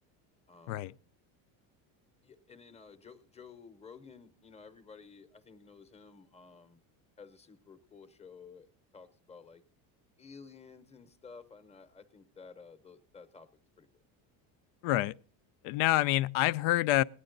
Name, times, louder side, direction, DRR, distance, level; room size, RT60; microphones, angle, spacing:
voice 1, 0.5-1.0 2.2-6.8 7.2-8.7 8.9-9.6 10.2-13.5 13.8-13.9, left 5 dB, 15° left, 0.8 m, -53 dB
voice 2, 14.8-15.2 15.6-17.0, left 16 dB, 80° left, 0.5 m, -27 dB
17.5 x 9.8 x 3.9 m
cardioid pair, 140°, 41 cm